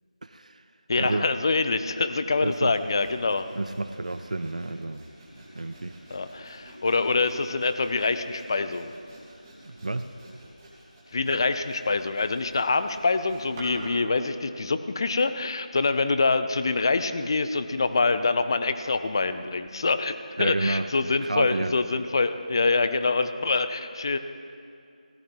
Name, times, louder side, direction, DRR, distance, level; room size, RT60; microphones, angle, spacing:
voice 1, 0.2-0.6 1.0-1.3 2.4-2.7 3.5-5.1 5.5-5.9 9.6-10.1 20.4-21.7, right 2 dB, 60° right, 10 dB, 0.6 m, -30 dB
voice 2, 0.9-3.5 6.1-8.9 11.1-24.2, left 3 dB, 35° left, 11 dB, 0.5 m, -25 dB
Sawing, 2.7-14.1, right 1 dB, 20° right, 2.4 m, -48 dB
15.5 x 12.0 x 4.5 m, 2.4 s
figure-of-eight pair, 165°, 4 cm